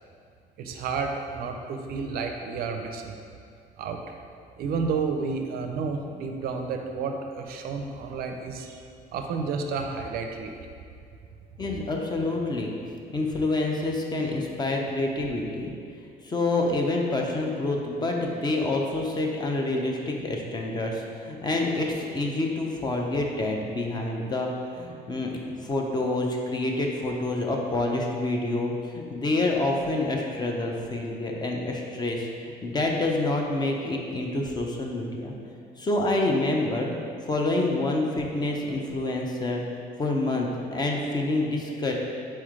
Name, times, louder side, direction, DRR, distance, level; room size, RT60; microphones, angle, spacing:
voice 1, 0.6-3.2 3.8-4.0 4.6-8.8 9.1-10.5, right 5 dB, 65° right, 4 dB, 0.4 m, -31 dB
voice 2, 11.6-12.8 13.1-15.7 16.2-35.3 35.8-36.9 37.2-39.6 40.0-41.9, left 2 dB, 25° left, 1 dB, 0.5 m, -27 dB
4.3 x 3.1 x 3.7 m, 2.4 s
cardioid pair, 110°, 17 cm